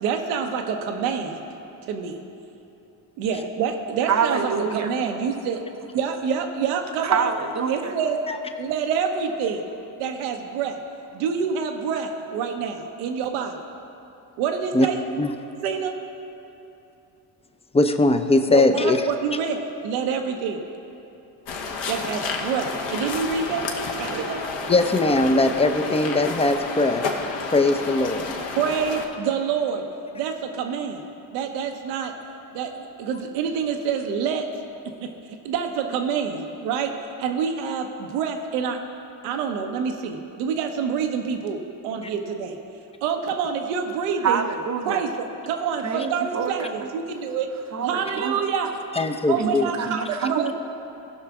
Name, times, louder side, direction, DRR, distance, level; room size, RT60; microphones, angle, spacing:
voice 1, 0.0-1.5 1.9-2.2 3.2-5.6 5.9-7.3 7.7-8.2 8.6-9.7 10.0-10.8 11.1-13.5 14.4-15.0 15.6-16.0 18.5-20.6 21.9-24.4 28.5-29.8 30.1-31.1 31.3-32.1 32.5-34.5 35.0-38.8 39.2-42.6 43.0-44.5 44.8-45.8 46.1-47.5 47.8-48.7 49.3-50.5, right 6 dB, 85° right, 5 dB, 1.0 m, -27 dB
voice 2, 4.1-4.9 7.0-7.9 44.2-45.0 45.8-46.7 47.7-48.4 49.3-50.5, right 6 dB, 35° right, 6 dB, 0.8 m, -26 dB
voice 3, 17.7-19.0 24.7-27.0 27.5-28.3 48.9-49.7, left 2 dB, 10° left, 7 dB, 0.6 m, -20 dB
sound 1, 21.4-29.1, left 4 dB, 60° left, 1.2 m, -30 dB
16.0 x 5.7 x 3.6 m, 2.9 s
hypercardioid pair, 65°, 50 cm